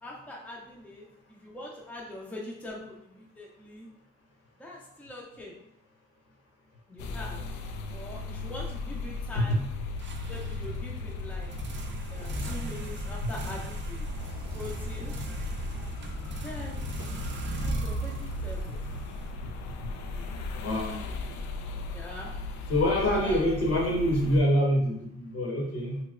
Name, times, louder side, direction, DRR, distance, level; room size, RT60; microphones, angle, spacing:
voice 1, 0.0-3.9 4.6-5.6 6.9-7.4 7.9-9.6 10.3-11.5 12.1-14.1 14.5-15.1 16.4-16.8 17.6-18.1 18.4-18.8 21.9-22.3 23.1-23.5, left 1 dB, 5° left, -3 dB, 0.6 m, -42 dB
sound 1, 7.0-24.4, left 2 dB, 70° left, 0.5 m, -36 dB
sound 2, 10.0-19.8, right 2 dB, 40° right, 0.5 m, -39 dB
sound 3, 14.2-21.9, equal, 20° right, 0.9 m, -47 dB
voice 2, 20.5-21.1 22.7-26.0, equal, 50° left, -1 dB, 1.0 m, -26 dB
3.1 x 2.8 x 2.4 m, 0.74 s
cardioid pair, 90°, 30 cm